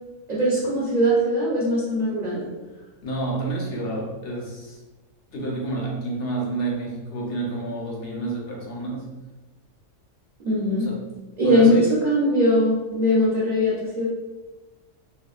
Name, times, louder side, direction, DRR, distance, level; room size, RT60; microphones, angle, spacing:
voice 1, 0.3-2.4 10.4-10.9 11.4-14.1, equal, 40° right, -8 dB, 0.8 m, -20 dB
voice 2, 3.0-4.8 5.3-9.1 10.8-11.0 11.4-11.9, right 2 dB, 55° left, -3 dB, 0.9 m, -29 dB
4.2 x 2.3 x 2.3 m, 1.2 s
omnidirectional pair, 1.3 m